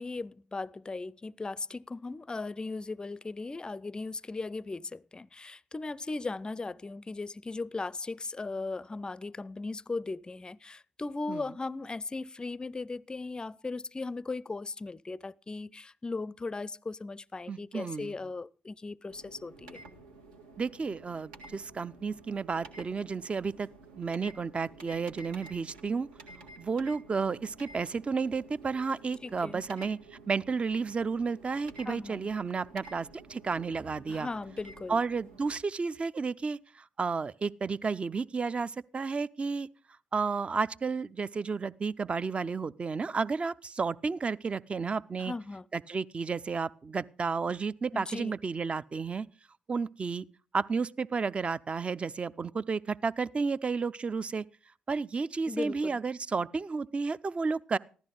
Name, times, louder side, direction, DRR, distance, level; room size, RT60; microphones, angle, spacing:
voice 1, 0.0-19.8 29.2-29.7 31.8-32.3 34.1-35.0 45.2-45.7 47.9-48.4 55.5-56.0, left 3 dB, 25° left, 0.5 m, -38 dB
voice 2, 17.5-18.1 20.6-23.7 23.9-26.1 26.6-30.0 30.3-34.3 34.9-39.7 40.1-45.3 45.7-49.3 49.7-50.2 50.5-54.5 54.9-57.8, right 4 dB, 30° right, 0.6 m, -32 dB
sound 1, 19.1-35.5, right 3 dB, 75° right, 1.7 m, -52 dB
15.5 x 13.0 x 3.9 m
figure-of-eight pair, 40°, 4 cm